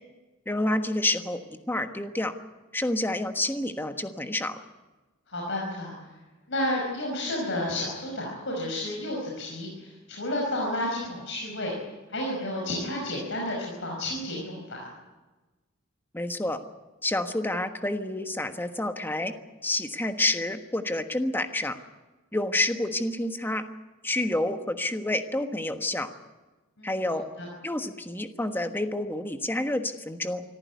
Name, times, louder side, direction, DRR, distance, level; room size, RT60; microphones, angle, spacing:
voice 1, 0.5-1.4 1.7-2.3 2.7-4.6 16.1-16.6 17.0-19.3 19.6-21.8 22.3-23.6 24.0-26.1 26.8-27.3 27.6-30.4, left 1 dB, 10° left, 7 dB, 1.3 m, -28 dB
voice 2, 5.3-5.9 6.5-11.7 12.1-14.9 26.8-26.9, left 1 dB, 60° left, -2 dB, 5.5 m, -31 dB
25.0 x 14.5 x 9.5 m, 1.2 s
head